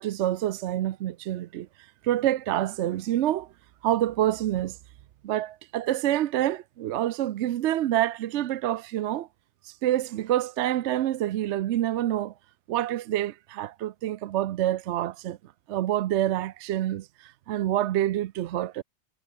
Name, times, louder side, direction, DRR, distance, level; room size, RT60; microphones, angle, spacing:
voice 1, 0.0-1.7 2.0-3.5 3.8-4.8 5.2-9.3 9.6-12.3 12.7-15.4 15.7-18.8, right 13 dB, 65° right, 0.8 m, -27 dB
omnidirectional pair, 1.4 m